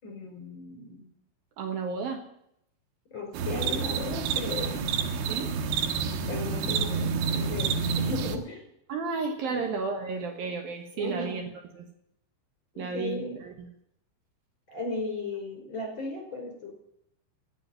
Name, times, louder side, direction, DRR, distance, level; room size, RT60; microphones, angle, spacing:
voice 1, 0.0-1.0 3.1-4.8 6.3-8.7 9.5-9.7 10.9-11.4 12.7-13.4 14.7-16.7, left 3 dB, 25° left, 2 dB, 5.3 m, -36 dB
voice 2, 1.6-2.2 5.3-5.5 8.9-11.4 11.8-11.9 12.8-13.7, right 5 dB, 65° right, 4 dB, 2.7 m, -32 dB
sound 1, 3.3-8.4, right 5 dB, 90° right, 3.8 m, -29 dB
16.5 x 7.6 x 9.4 m, 0.76 s
omnidirectional pair, 5.4 m